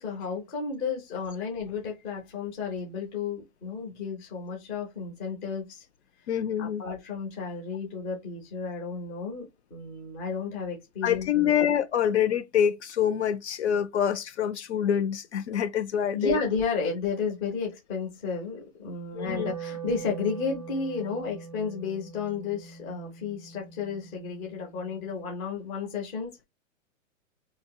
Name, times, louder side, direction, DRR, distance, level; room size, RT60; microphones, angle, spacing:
voice 1, 0.0-5.8 6.6-11.7 16.1-26.4, left 5 dB, 10° left, 0.6 m, -33 dB
voice 2, 6.3-6.8 11.0-16.4 19.1-19.5, left 9 dB, 55° left, 0.5 m, -26 dB
Wind instrument woodwind instrument, 18.9-25.2, right 7 dB, 35° right, 0.5 m, -42 dB
4.2 x 2.8 x 2.2 m
hypercardioid pair, 175°, 41 cm